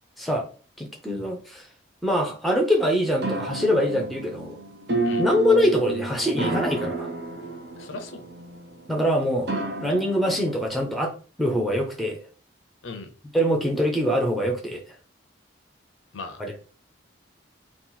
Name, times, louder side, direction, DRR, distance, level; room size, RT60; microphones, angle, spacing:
voice 1, 0.2-0.5 0.8-1.7 2.0-4.6 5.2-7.1 8.9-9.5 9.8-11.1 11.4-12.2 13.3-14.8 16.4-16.6, equal, ahead, 2 dB, 0.6 m, -24 dB
sound 1, 3.2-10.7, right 2 dB, 55° right, 0.7 m, -31 dB
voice 2, 7.8-8.2 12.8-13.1 16.1-16.4, left 3 dB, 80° left, 7 dB, 0.6 m, -37 dB
2.8 x 2.5 x 3.8 m, 0.38 s
head